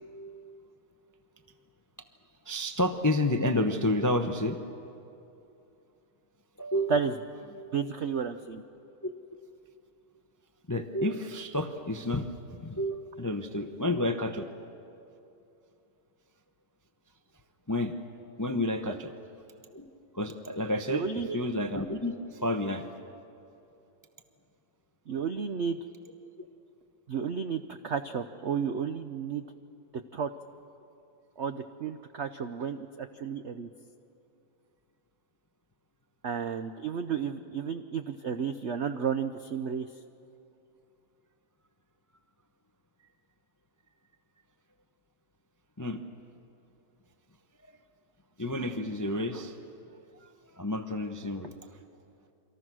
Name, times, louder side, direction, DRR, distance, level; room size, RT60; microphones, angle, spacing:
voice 1, 2.4-4.6 6.6-7.0 9.0-9.1 10.7-12.3 12.6-14.5 17.7-17.9 18.4-19.1 19.7-19.9 20.1-21.0 21.3-22.9 26.4-26.5 45.8-46.0 48.4-49.6 50.2-50.3 50.6-51.5, left 1 dB, 30° left, 6 dB, 0.3 m, -30 dB
voice 2, 7.7-8.6 18.8-19.0 20.9-21.4 25.1-25.8 27.1-29.4 30.1-30.3 31.4-33.7 36.2-39.9, right 6 dB, 80° right, 9 dB, 0.6 m, -32 dB
28.5 x 24.5 x 6.2 m, 2.7 s
omnidirectional pair, 2.1 m